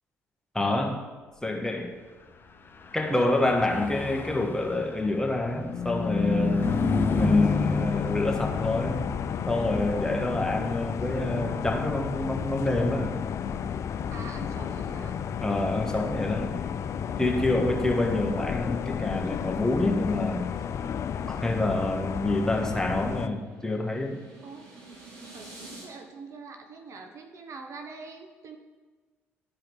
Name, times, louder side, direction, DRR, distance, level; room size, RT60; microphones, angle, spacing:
voice 1, 0.5-1.0 1.4-2.0 2.9-6.7 7.1-9.0 9.5-13.2 15.4-16.5 17.2-20.5 21.3-24.2, left 2 dB, 10° left, 1 dB, 1.6 m, -27 dB
Car passing by / Truck, 2.7-16.4, left 4 dB, 35° left, 1.0 m, -32 dB
sound 1, 6.6-23.3, left 8 dB, 55° left, 0.5 m, -32 dB
voice 2, 14.1-15.2 17.3-17.9 24.4-24.7 25.3-28.6, right 4 dB, 55° right, 5 dB, 1.0 m, -44 dB
sound 2, 22.8-25.9, right 2 dB, 75° right, 2.3 m, -49 dB
12.0 x 4.8 x 4.7 m, 1.3 s
hypercardioid pair, 55°, 6 cm